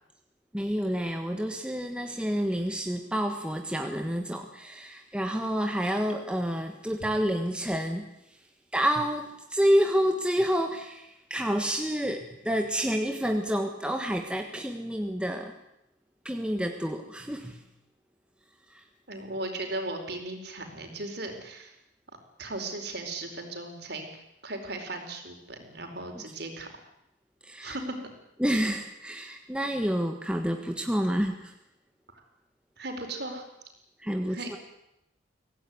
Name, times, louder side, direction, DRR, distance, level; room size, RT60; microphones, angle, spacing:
voice 1, 0.5-8.1 8.7-15.6 16.2-17.6 18.7-18.8 27.4-27.8 28.4-31.5 34.0-34.6, equal, 5° right, 4 dB, 1.5 m, -29 dB
voice 2, 19.1-21.7 22.4-26.7 27.6-27.8 32.1-32.2 32.8-33.5 34.3-34.6, right 2 dB, 55° right, 5 dB, 4.7 m, -37 dB
24.0 x 17.0 x 9.7 m, 0.88 s
head